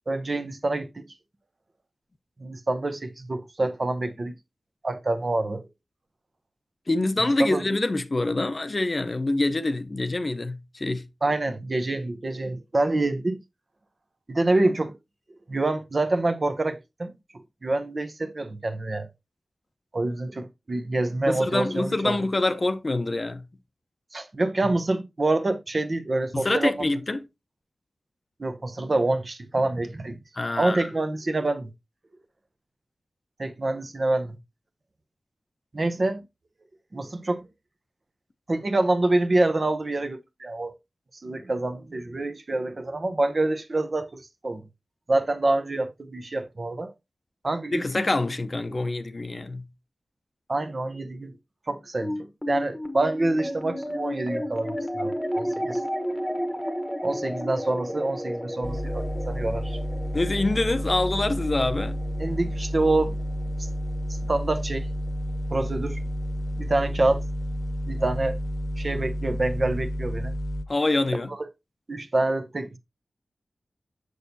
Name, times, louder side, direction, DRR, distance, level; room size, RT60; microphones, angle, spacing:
voice 1, 0.1-1.0 2.4-4.3 4.8-5.7 7.2-7.6 11.2-13.4 14.3-14.9 15.5-17.1 17.6-19.1 19.9-22.2 24.1-27.0 28.4-30.2 30.6-31.7 33.4-34.4 35.7-36.2 36.9-37.4 38.5-40.8 41.2-44.6 45.1-46.9 47.4-48.0 50.5-51.3 51.7-55.8 57.0-59.8 62.2-63.2 63.6-63.7 64.3-64.9 65.5-66.0 66.6-67.2 67.9-68.4 68.8-70.3 71.3-71.4 71.9-72.8, right 2 dB, 45° right, 0.7 m, -26 dB
voice 2, 6.9-11.1 21.3-23.4 26.3-27.2 30.3-30.9 47.7-49.6 60.1-62.0 70.7-71.3, left 2 dB, 40° left, 0.6 m, -25 dB
sound 1, 52.0-64.6, equal, 5° left, 1.1 m, -33 dB
sound 2, 58.6-70.6, equal, 10° right, 0.6 m, -30 dB
6.7 x 6.3 x 2.7 m
wide cardioid pair, 75°, 0 cm